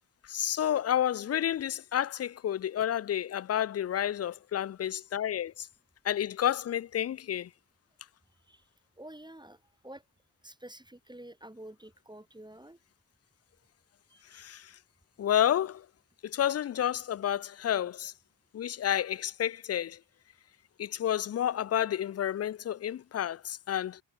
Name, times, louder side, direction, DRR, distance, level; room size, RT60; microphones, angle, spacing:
voice 1, 0.3-5.7 6.0-7.5 14.3-14.7 15.2-15.9 16.2-18.1 18.5-20.0 20.8-24.0, left 10 dB, 35° left, 0.4 m, -30 dB
voice 2, 9.0-9.6 9.8-10.0 10.4-12.8 14.1-14.4, right 1 dB, 10° right, 3.2 m, -48 dB
cardioid pair, 70°, 45 cm